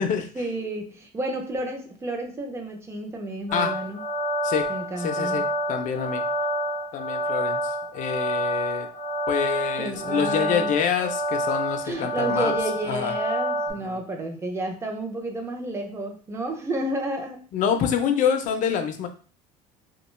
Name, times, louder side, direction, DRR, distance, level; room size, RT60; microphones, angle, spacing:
voice 1, 0.3-4.0 4.7-5.4 9.8-10.7 11.8-17.4, right 1 dB, 15° right, 3 dB, 0.5 m, -31 dB
sound 1, 3.5-13.7, equal, 70° right, 1.0 m, -28 dB
voice 2, 5.0-6.2 6.9-8.9 9.3-12.5 12.9-13.1 13.8-14.0 17.5-19.1, left 7 dB, 50° left, 7 dB, 0.5 m, -26 dB
2.4 x 2.2 x 3.1 m, 0.38 s
cardioid pair, 135°, 17 cm